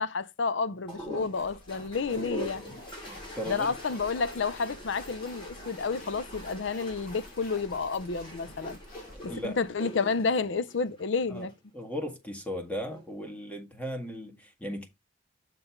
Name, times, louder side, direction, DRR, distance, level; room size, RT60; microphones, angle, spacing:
voice 1, 0.0-2.6 3.5-8.8 9.2-11.5, left 4 dB, 70° left, 0.6 m, -30 dB
sound 1, 0.9-9.7, equal, 50° left, 3.4 m, -50 dB
sound 2, 0.9-11.6 12.7-13.3, equal, 25° left, 3.3 m, -43 dB
voice 2, 2.7-3.7 9.2-9.6 11.3-11.5 11.7-14.9, equal, 5° left, 1.7 m, -37 dB
6.7 x 3.8 x 5.8 m
head